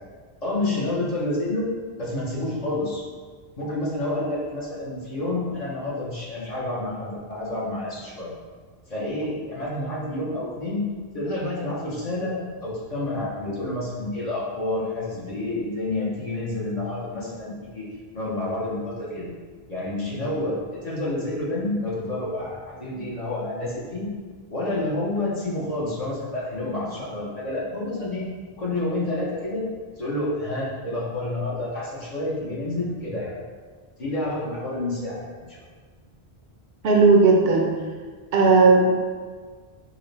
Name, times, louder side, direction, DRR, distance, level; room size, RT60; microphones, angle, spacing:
voice 1, 0.4-1.7 2.0-3.0 3.6-8.3 8.9-10.9 11.1-19.3 19.7-24.1 24.5-28.3 28.6-29.7 30.0-33.4 34.0-35.6, left 2 dB, 45° left, -6 dB, 0.8 m, -29 dB
voice 2, 36.8-37.7 38.3-38.9, right 3 dB, 70° right, 0 dB, 0.8 m, -16 dB
4.8 x 2.1 x 3.2 m, 1.5 s
omnidirectional pair, 1.1 m